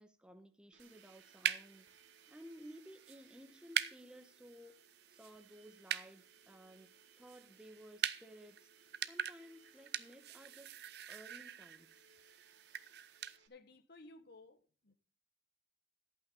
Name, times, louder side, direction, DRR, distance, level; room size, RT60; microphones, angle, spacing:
voice 1, 0.0-1.9 2.3-4.8 5.1-6.9 7.2-8.7 9.1-10.8 11.1-12.0, equal, 5° right, 1.1 m, -56 dB
Domestic sounds home sounds, 0.7-13.5, right 5 dB, 75° right, 1.6 m, -68 dB
sound 1, 0.8-13.4, right 10 dB, 55° right, 0.6 m, -44 dB
voice 2, 13.5-14.9, left 2 dB, 55° left, 1.2 m, -58 dB
11.5 x 8.6 x 5.4 m
head